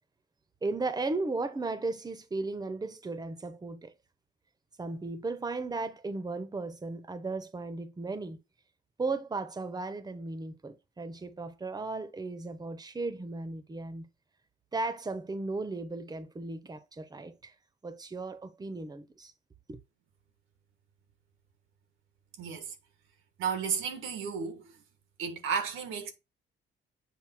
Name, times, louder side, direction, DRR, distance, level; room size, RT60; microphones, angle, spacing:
voice 1, 0.6-3.9 4.8-8.4 9.0-14.0 14.7-17.5 17.8-19.3 19.7-19.8, right 3 dB, 20° right, 1.0 m, -36 dB
voice 2, 22.4-22.7 23.4-24.7 25.2-26.1, right 6 dB, 90° right, 1.6 m, -33 dB
7.7 x 2.7 x 5.9 m
cardioid pair, 90°, 20 cm